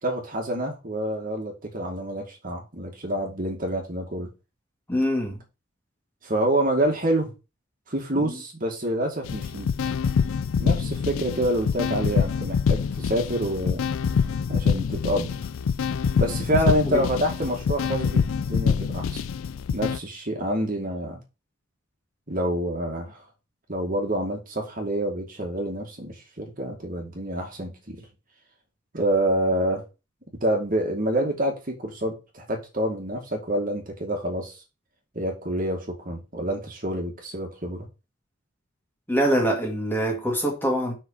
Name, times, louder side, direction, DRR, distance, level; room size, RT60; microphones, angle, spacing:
voice 1, 0.0-4.3 6.2-7.3 7.9-9.7 10.6-13.8 14.5-15.3 16.2-19.2 19.7-21.2 22.3-23.2 23.7-28.0 28.9-29.8 30.4-34.5 35.2-37.9, right 1 dB, 40° right, 2.0 m, -27 dB
voice 2, 4.9-5.4 8.1-8.4 16.8-17.0 39.1-40.9, equal, 10° left, 2.0 m, -24 dB
sound 1, 9.2-20.0, left 6 dB, 80° left, 0.4 m, -25 dB
5.7 x 5.3 x 5.4 m
head